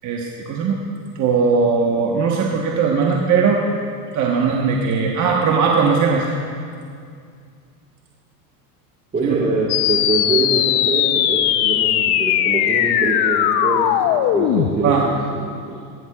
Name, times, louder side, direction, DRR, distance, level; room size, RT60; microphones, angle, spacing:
voice 1, 0.0-0.8 1.1-3.6 4.1-6.3 9.2-9.4 14.8-15.1, right 5 dB, 35° right, -1 dB, 1.3 m, -19 dB
voice 2, 9.1-15.2 15.7-15.8, right 3 dB, 20° right, -4 dB, 1.7 m, -24 dB
sound 1, 9.7-14.7, left 11 dB, 50° left, 0.8 m, -18 dB
17.5 x 15.0 x 2.4 m, 2.3 s
hypercardioid pair, 105°, 49 cm